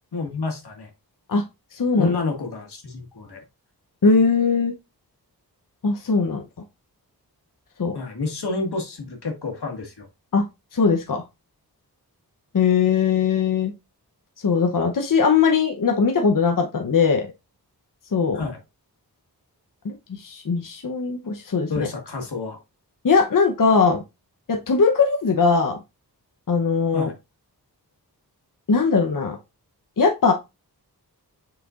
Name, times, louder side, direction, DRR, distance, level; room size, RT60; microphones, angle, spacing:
voice 1, 0.1-0.9 2.0-3.4 7.9-10.1 18.3-18.6 21.7-22.6 26.9-27.1, left 3 dB, 90° left, 2 dB, 1.8 m, -29 dB
voice 2, 1.7-2.1 4.0-4.7 5.8-6.4 7.8-8.0 10.3-10.4 10.7-11.2 12.5-13.7 14.4-17.3 18.1-18.4 19.8-21.9 23.0-24.0 24.5-25.8 26.5-27.1 28.7-29.4 30.0-30.3, left 5 dB, 55° left, 3 dB, 0.8 m, -20 dB
6.5 x 5.9 x 2.5 m, 0.24 s
wide cardioid pair, 70°, 38 cm